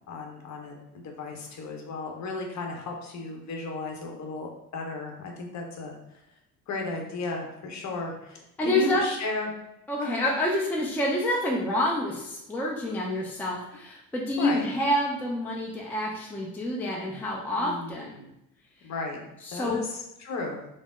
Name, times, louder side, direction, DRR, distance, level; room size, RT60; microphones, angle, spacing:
voice 1, 0.1-5.9 6.7-9.5 10.0-10.2 14.4-14.7 17.6-18.3 18.8-19.2 19.5-20.6, left 3 dB, 40° left, 1 dB, 0.9 m, -35 dB
voice 2, 8.6-9.0 9.9-18.1 19.4-19.8, left 1 dB, 5° left, -3 dB, 0.5 m, -28 dB
3.4 x 2.1 x 3.5 m, 0.85 s
hypercardioid pair, 65°, 46 cm